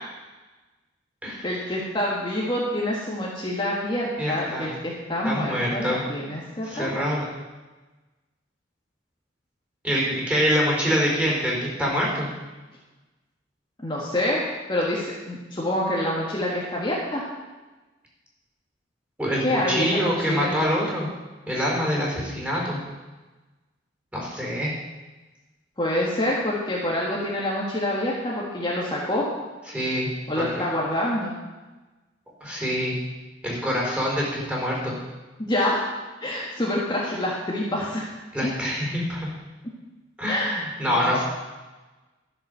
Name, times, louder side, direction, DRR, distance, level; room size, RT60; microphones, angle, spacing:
voice 1, 1.4-7.1 13.8-14.4 14.7-17.3 19.4-20.5 25.8-29.3 30.3-31.4 35.5-35.8 36.2-38.1 38.4-38.5 40.3-41.2, left 1 dB, 25° left, -5 dB, 1.8 m, -27 dB
voice 2, 4.2-4.7 5.2-6.0 6.6-7.2 9.8-12.3 19.2-21.1 21.5-22.8 24.1-24.7 29.7-30.1 30.4-30.5 32.4-33.0 33.4-34.9 38.3-39.3 40.2-41.2, equal, 10° right, -4 dB, 4.5 m, -25 dB
13.0 x 7.5 x 6.9 m, 1.2 s
head